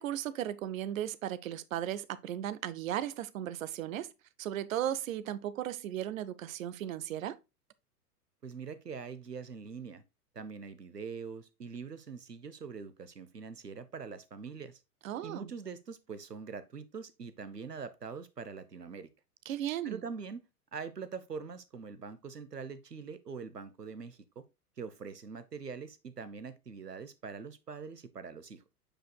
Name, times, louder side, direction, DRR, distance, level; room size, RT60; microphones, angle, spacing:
voice 1, 0.0-4.1 4.4-7.4 15.0-15.5 19.5-20.0, right 11 dB, 60° right, 0.8 m, -36 dB
voice 2, 8.4-10.0 10.3-14.8 15.2-19.1 19.8-20.4 20.7-24.4 24.8-28.7, right 5 dB, 90° right, 1.0 m, -43 dB
8.9 x 5.1 x 2.2 m
figure-of-eight pair, 95°, 46 cm